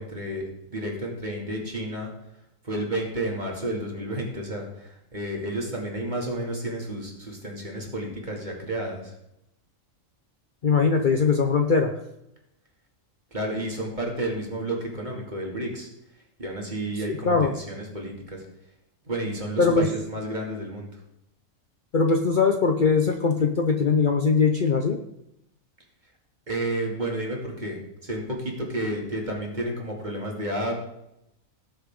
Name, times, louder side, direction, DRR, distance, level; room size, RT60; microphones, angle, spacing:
voice 1, 0.0-2.1 2.6-9.1 13.3-15.9 16.4-18.4 19.1-20.9 26.5-30.7, right 1 dB, 35° right, -1 dB, 2.6 m, -31 dB
voice 2, 10.6-11.9 17.2-17.5 19.6-19.9 21.9-25.0, left 5 dB, 45° left, 3 dB, 0.8 m, -21 dB
18.0 x 7.0 x 3.7 m, 0.84 s
omnidirectional pair, 1.4 m